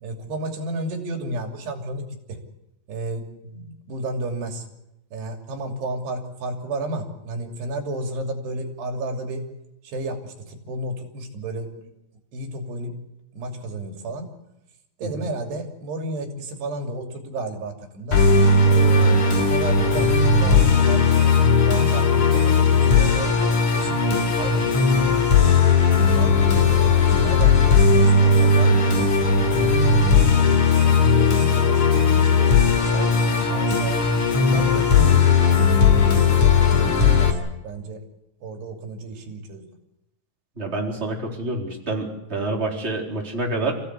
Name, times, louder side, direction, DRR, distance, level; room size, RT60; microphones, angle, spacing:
voice 1, 0.0-2.4 2.9-4.7 5.1-9.4 9.8-11.9 12.3-12.9 13.3-14.3 15.0-18.2 18.7-21.3 21.6-23.3 23.7-24.0 24.3-25.2 26.0-26.4 26.7-29.3 29.6-30.0 30.6-34.0 34.4-35.2 35.8-37.4 37.6-38.0 38.4-39.7, right 2 dB, 90° right, 3 dB, 5.0 m, -32 dB
Musical instrument, 18.1-37.3, left 4 dB, 50° left, 4.6 m, -17 dB
voice 2, 40.6-43.7, right 2 dB, 15° right, 0 dB, 4.0 m, -27 dB
29.0 x 16.0 x 8.3 m, 0.90 s
omnidirectional pair, 4.6 m